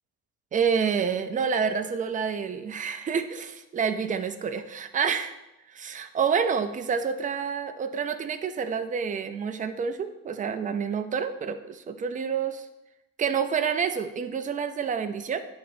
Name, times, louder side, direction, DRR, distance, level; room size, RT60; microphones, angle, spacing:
voice 1, 0.5-5.4 5.7-12.7 13.2-15.4, right 6 dB, 25° right, 8 dB, 0.4 m, -28 dB
10.0 x 4.0 x 2.6 m, 0.93 s
cardioid pair, 135°, 35 cm